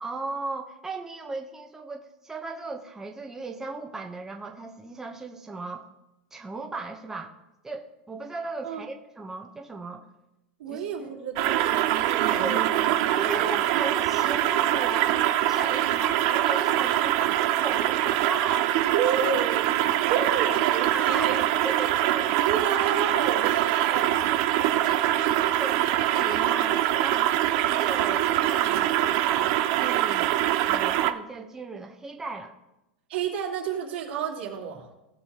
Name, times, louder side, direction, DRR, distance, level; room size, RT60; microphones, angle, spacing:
voice 1, 0.0-5.8 6.3-7.3 7.6-10.1 10.7-10.8 12.2-12.6 13.1-18.8 19.0-19.2 20.2-21.4 21.6-22.5 24.8-27.3 27.7-30.4 30.7-32.5, right 3 dB, 10° right, 1 dB, 0.9 m, -36 dB
voice 2, 10.6-13.4 15.6-16.0 18.9-19.7 20.1-21.4 22.4-24.3 33.1-34.9, right 7 dB, 75° right, -1 dB, 2.7 m, -31 dB
sound 1, 11.4-31.1, right 13 dB, 50° right, 0.6 m, -24 dB
17.5 x 6.6 x 2.9 m, 0.97 s
supercardioid pair, 135°, 6 cm